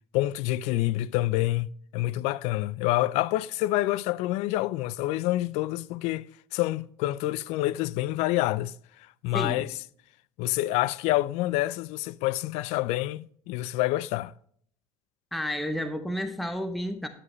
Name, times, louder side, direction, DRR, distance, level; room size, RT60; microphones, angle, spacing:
voice 1, 0.1-6.3 6.5-8.7 9.2-9.7 10.4-14.3, left 16 dB, 70° left, 0.4 m, -27 dB
voice 2, 9.3-9.6 15.3-17.1, equal, ahead, 0.6 m, -31 dB
9.8 x 9.6 x 3.1 m
cardioid pair, 140°, 12 cm